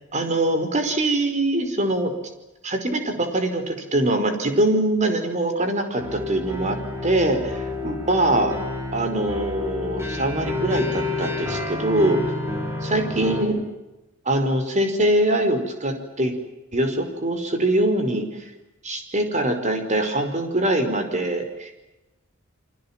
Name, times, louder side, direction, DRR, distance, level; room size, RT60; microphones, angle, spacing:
voice 1, 0.1-2.1 2.6-6.8 7.0-8.6 8.9-12.2 12.8-13.6 14.2-16.3 16.7-18.5 18.8-21.8, right 1 dB, 35° right, 6 dB, 5.1 m, -23 dB
sound 1, 6.0-13.4, left 2 dB, 15° right, 6.1 m, -29 dB
29.5 x 25.0 x 7.5 m, 1.0 s
head